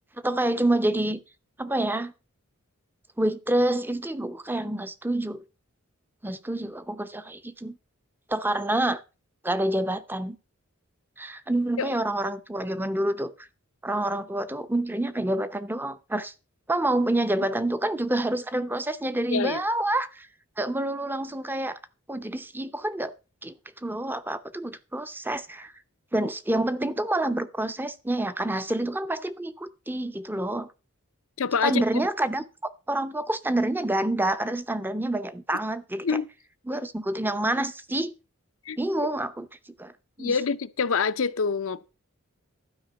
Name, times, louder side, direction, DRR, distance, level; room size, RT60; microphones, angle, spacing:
voice 1, 0.2-1.2 1.6-2.1 3.2-5.4 6.2-7.8 8.3-9.0 9.4-10.4 11.2-13.3 13.8-16.3 16.7-20.3 20.6-21.8 22.1-23.1 23.4-23.5 23.8-25.7 26.1-30.7 31.6-32.4 32.9-36.1 36.7-38.1 38.8-39.5 39.8-39.9 40.2-40.3, right 1 dB, 10° right, 0.7 m, -27 dB
voice 2, 19.3-19.6 31.4-31.8 36.0-36.3 38.7-38.8 40.2-41.9, left 5 dB, 65° left, 0.6 m, -26 dB
12.0 x 4.9 x 7.0 m
head